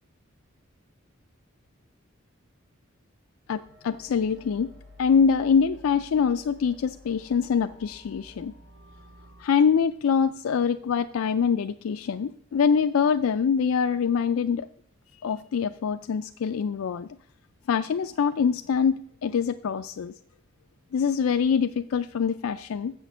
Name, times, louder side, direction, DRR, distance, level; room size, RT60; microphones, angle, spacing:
voice 1, 3.5-4.7 5.0-8.5 9.4-14.7 15.2-17.1 17.7-20.1 20.9-22.9, left 6 dB, 85° left, 9 dB, 0.4 m, -24 dB
sound 1, 3.5-9.5, left 2 dB, 70° right, 1.8 m, -51 dB
7.4 x 6.3 x 7.1 m, 0.64 s
head